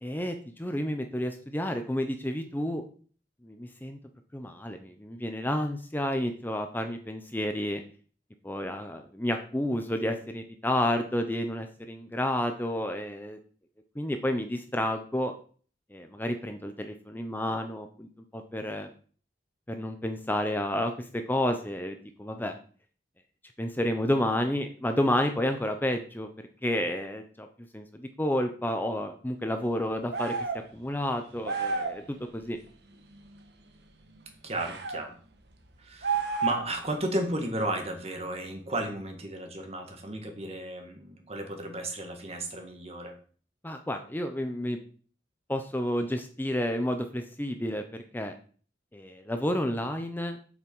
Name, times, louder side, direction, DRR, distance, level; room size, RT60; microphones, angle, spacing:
voice 1, 0.0-2.8 3.4-4.0 4.3-7.8 8.4-13.4 14.0-15.3 15.9-18.9 19.7-22.5 23.6-26.3 26.6-27.5 27.7-30.3 30.7-32.6 43.6-44.8 45.5-47.8 48.1-48.3 48.9-50.4, left 1 dB, 10° left, 6 dB, 0.8 m, -30 dB
sound 1, 30.1-30.6 31.4-32.0 34.5-35.0 36.0-36.8, right 4 dB, 70° right, 1.4 m, -30 dB
voice 2, 34.4-35.2 35.8-43.1, right 1 dB, 35° right, 4 dB, 1.9 m, -34 dB
7.9 x 7.4 x 5.5 m, 0.43 s
head